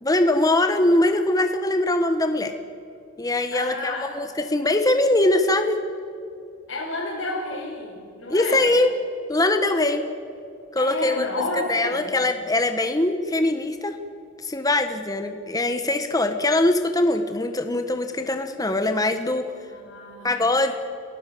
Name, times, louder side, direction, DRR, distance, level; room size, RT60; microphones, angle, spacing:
voice 1, 0.0-2.5 3.2-5.8 8.3-8.9 9.3-10.0 10.7-13.9 14.4-19.5 20.2-20.7, left 2 dB, 20° left, 7 dB, 1.2 m, -22 dB
voice 2, 3.5-4.1 6.7-8.7 10.8-12.2 19.7-20.3, left 2 dB, 90° left, -6 dB, 5.4 m, -31 dB
30.0 x 15.5 x 7.8 m, 2.4 s
head